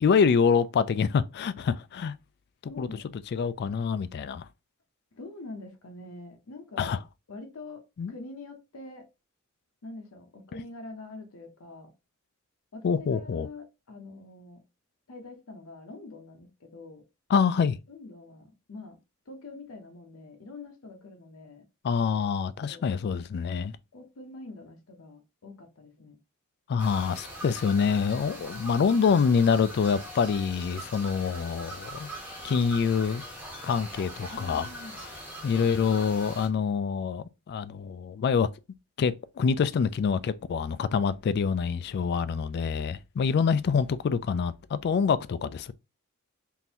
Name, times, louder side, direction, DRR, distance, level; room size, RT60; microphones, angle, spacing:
voice 1, 0.0-2.1 2.8-2.9 3.3-4.5 6.8-7.0 8.0-8.1 12.8-13.5 17.3-17.8 21.8-23.7 26.7-32.1 32.4-33.2 33.6-34.7 35.4-38.5 39.0-45.7, left 6 dB, 50° left, 0.3 m, -26 dB
voice 2, 2.6-3.1 5.1-7.8 8.1-9.1 9.8-11.9 12.7-14.6 15.1-17.0 17.9-19.0 19.3-21.6 22.6-22.9 23.9-26.2 34.3-35.0 43.3-43.4, left 2 dB, 80° left, 0.8 m, -45 dB
sound 1, 26.8-36.5, equal, 10° right, 1.2 m, -42 dB
3.8 x 2.5 x 2.8 m
head